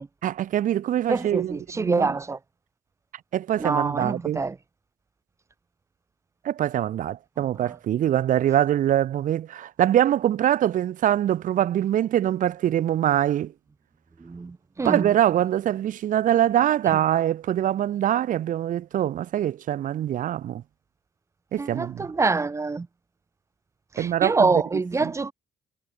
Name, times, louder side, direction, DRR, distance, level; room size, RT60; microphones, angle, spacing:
voice 1, 0.2-2.1 3.3-4.4 6.4-13.5 14.8-20.6 21.5-22.1 24.0-24.6 25.0-25.1, right 11 dB, 50° right, 0.8 m, -23 dB
voice 2, 1.1-2.4 3.6-4.6 7.6-7.7 14.2-15.1 21.6-22.9 23.9-25.3, right 3 dB, 15° right, 0.6 m, -26 dB
cardioid pair, 110°, 17 cm